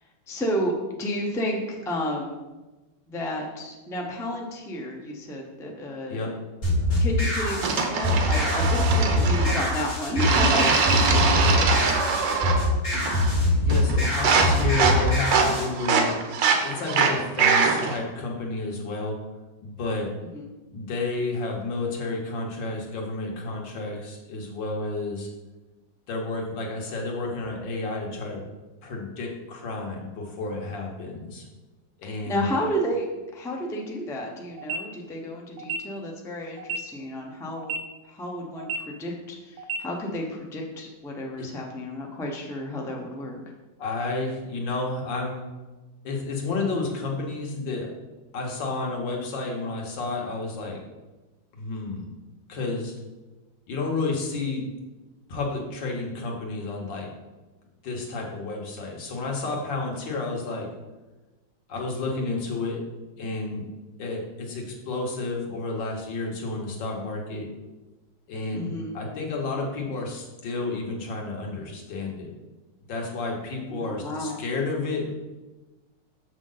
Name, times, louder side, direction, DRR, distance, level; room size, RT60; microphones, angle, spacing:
voice 1, 0.3-0.7 1.0-2.4 3.1-6.2 7.0-10.6 11.1-13.3 20.2-20.5 32.3-33.1 33.3-37.7 38.0-43.4 68.5-68.9 73.7-74.4, equal, 5° left, -1 dB, 0.4 m, -32 dB
sound 1, 6.6-15.7, left 1 dB, 45° left, 2.8 m, -23 dB
sound 2, 7.6-9.7 10.2-12.6 12.9-13.4 13.7-18.0, right 5 dB, 85° right, 1.5 m, -23 dB
voice 2, 11.1-11.4 13.6-16.2 16.6-19.2 19.6-20.1 20.7-25.3 26.1-28.4 28.8-31.5 32.0-32.5 41.4-41.5 43.8-45.5 46.0-47.9 48.3-50.8 51.5-52.1 52.5-52.9 53.7-54.7 55.3-57.1 57.8-60.7 61.7-62.8 63.2-63.7 64.0-67.5 68.3-72.3 72.9-75.1, left 3 dB, 85° left, 0 dB, 1.9 m, -31 dB
sound 3, 34.6-34.8 35.6-35.8 36.6-36.8 37.6-37.8 38.6-38.8 39.6-39.8, right 4 dB, 70° right, 1.1 m, -30 dB
6.4 x 5.9 x 3.9 m, 1.2 s
omnidirectional pair, 1.9 m